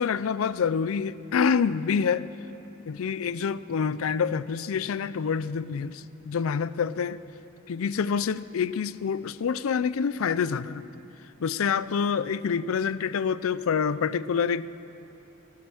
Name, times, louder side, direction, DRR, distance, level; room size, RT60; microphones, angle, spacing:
voice 1, 0.0-2.3 2.9-7.2 7.7-10.9 11.4-14.7, left 6 dB, 85° left, 17 dB, 0.4 m, -27 dB
19.5 x 9.7 x 6.3 m, 2.9 s
head